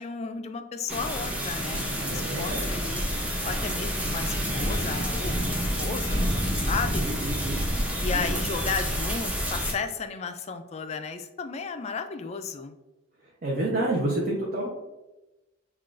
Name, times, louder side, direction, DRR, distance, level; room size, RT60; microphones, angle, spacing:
voice 1, 0.0-3.0 3.4-7.0 8.0-12.7, left 5 dB, 35° left, 8 dB, 0.3 m, -34 dB
sound 1, 0.9-9.7, equal, 5° right, 0.6 m, -28 dB
voice 2, 2.1-2.7 7.0-7.6 8.1-8.3 13.4-14.7, right 1 dB, 50° right, -3 dB, 0.7 m, -29 dB
5.7 x 2.4 x 2.4 m, 1.0 s
head